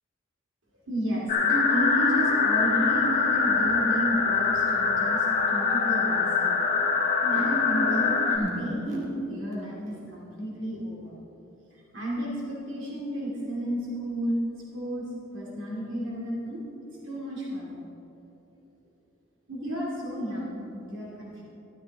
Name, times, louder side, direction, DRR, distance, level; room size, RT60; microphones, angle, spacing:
voice 1, 0.9-6.7 7.2-11.1 11.9-14.4 14.7-17.9 19.5-21.4, equal, 70° right, -5 dB, 2.4 m, -32 dB
sound 1, 1.3-8.4, left 5 dB, 40° left, 1.3 m, -24 dB
13.0 x 12.0 x 3.5 m, 2.9 s
head